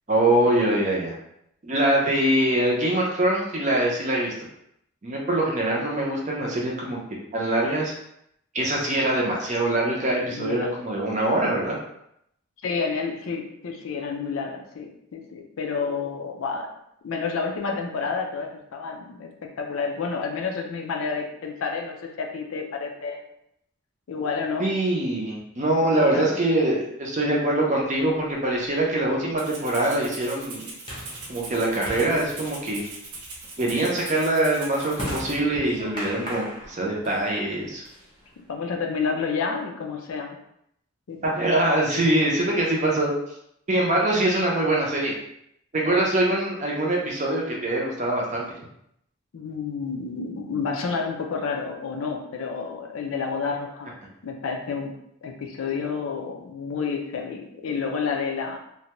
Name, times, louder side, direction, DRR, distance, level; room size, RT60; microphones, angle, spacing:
voice 1, 0.1-1.1 1.6-4.3 5.0-7.0 7.3-7.9 8.5-11.8 24.6-30.7 31.3-32.8 33.6-37.8 41.2-43.1 43.7-45.1 45.7-48.5, right 1 dB, 35° right, -2 dB, 0.5 m, -23 dB
voice 2, 10.2-10.7 12.6-16.7 17.0-23.2 24.1-24.7 26.0-26.3 38.5-40.4 41.1-41.2 43.7-43.9 49.3-53.9 54.2-54.9 55.2-58.6, left 5 dB, 70° left, 2 dB, 0.4 m, -30 dB
sound 1, 28.2-38.6, equal, 20° left, 0.7 m, -40 dB
Rattle (instrument), 29.4-35.4, right 3 dB, 90° right, 0.7 m, -40 dB
2.6 x 2.2 x 2.9 m, 0.76 s
head